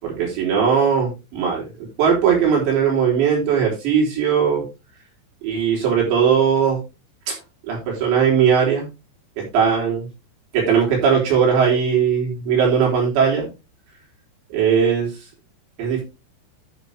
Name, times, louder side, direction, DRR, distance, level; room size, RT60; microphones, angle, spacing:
voice 1, 0.0-4.6 5.4-6.8 7.3-7.4 7.7-8.9 9.4-10.1 10.5-13.5 14.5-15.1 15.8-16.0, right 7 dB, 80° right, -2 dB, 6.1 m, -19 dB
12.5 x 7.3 x 3.5 m, 0.26 s
omnidirectional pair, 5.1 m